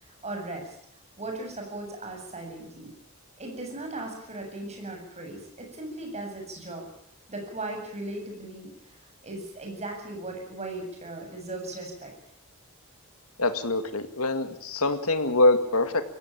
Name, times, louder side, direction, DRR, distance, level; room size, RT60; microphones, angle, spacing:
voice 1, 0.2-0.7 1.2-2.9 3.4-6.9 7.3-8.7 9.2-12.1, right 2 dB, 30° right, 2 dB, 7.7 m, -37 dB
voice 2, 13.4-16.0, left 2 dB, 75° left, 9 dB, 2.1 m, -24 dB
23.0 x 17.0 x 8.7 m, 0.70 s
head